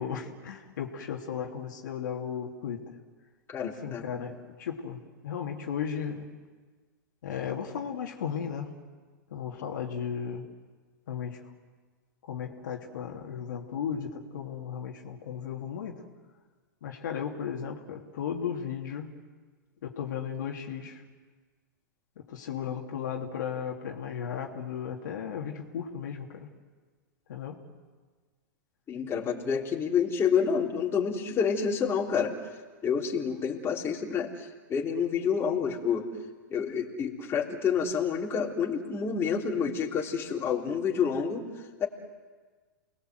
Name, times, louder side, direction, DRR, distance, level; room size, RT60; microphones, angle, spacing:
voice 1, 0.0-3.0 3.6-6.3 7.2-8.7 9.3-10.5 11.1-11.5 12.2-16.0 16.8-19.2 19.8-21.0 22.2-26.5 27.3-27.6, left 7 dB, 70° left, 0 dB, 2.8 m, -35 dB
voice 2, 3.5-4.0 28.9-32.4 32.8-36.1 36.5-41.5 41.8-41.9, left 6 dB, 25° left, -1 dB, 3.6 m, -28 dB
29.5 x 21.0 x 8.0 m, 1.4 s
hypercardioid pair, 115°, 10 cm